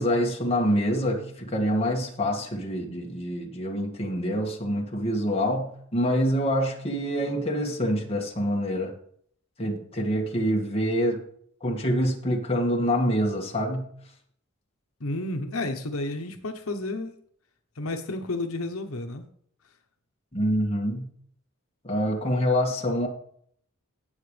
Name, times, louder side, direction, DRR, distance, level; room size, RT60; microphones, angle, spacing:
voice 1, 0.0-8.9 9.6-11.2 11.6-13.9 20.3-21.1 21.8-23.1, equal, 30° left, 0 dB, 2.1 m, -26 dB
voice 2, 15.0-17.1 17.8-19.2, left 2 dB, 80° left, 5 dB, 1.0 m, -31 dB
17.5 x 7.1 x 3.4 m, 0.63 s
head